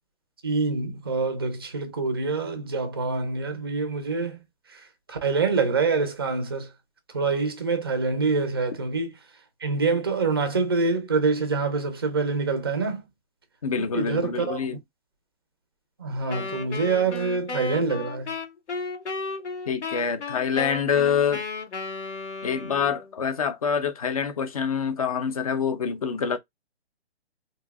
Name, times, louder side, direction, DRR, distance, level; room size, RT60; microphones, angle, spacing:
voice 1, 0.4-4.4 4.7-6.7 7.1-9.1 9.6-13.0 13.8-14.7 16.0-18.3, right 4 dB, 25° right, 0.4 m, -26 dB
voice 2, 13.6-14.8 19.7-21.4 22.4-26.4, left 7 dB, 35° left, 0.4 m, -26 dB
Wind instrument woodwind instrument, 16.3-23.1, left 4 dB, 90° left, 1.0 m, -34 dB
3.0 x 2.7 x 2.2 m
hypercardioid pair, 155°, 33 cm